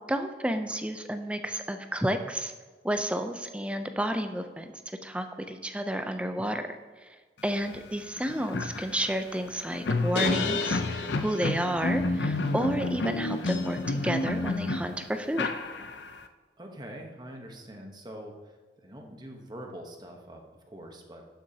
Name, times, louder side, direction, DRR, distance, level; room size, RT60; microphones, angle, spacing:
voice 1, 0.1-2.5 2.8-4.7 5.0-6.7 7.0-7.1 7.4-15.5, equal, 5° right, 7 dB, 0.5 m, -31 dB
sound 1, 7.7-7.8 8.2-16.2, left 3 dB, 75° left, 0.6 m, -30 dB
voice 2, 16.6-18.3 18.8-21.2, right 1 dB, 25° right, 2 dB, 1.0 m, -44 dB
11.5 x 7.0 x 2.8 m, 1.4 s
head